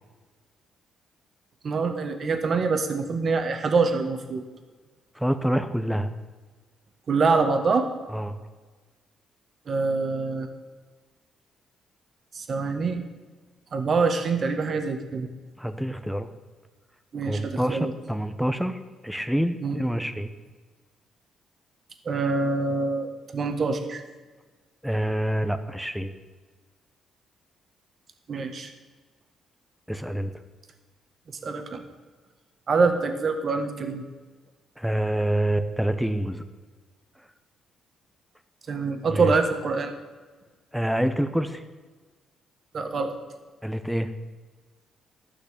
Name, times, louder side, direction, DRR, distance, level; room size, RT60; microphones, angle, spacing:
voice 1, 1.6-4.4 7.1-7.9 9.7-10.5 12.3-13.0 13.7-15.3 17.1-17.9 19.6-19.8 22.0-24.0 28.3-28.7 31.4-31.8 32.7-34.0 38.7-39.9 42.7-43.1, right 4 dB, 50° right, 7 dB, 1.5 m, -25 dB
voice 2, 5.2-6.1 8.1-8.4 15.6-16.3 17.2-20.3 24.8-26.1 29.9-30.3 34.8-36.4 39.1-39.3 40.7-41.6 43.6-44.1, right 1 dB, ahead, 10 dB, 1.0 m, -27 dB
12.5 x 6.1 x 8.7 m, 1.4 s
cardioid pair, 90°, 0 cm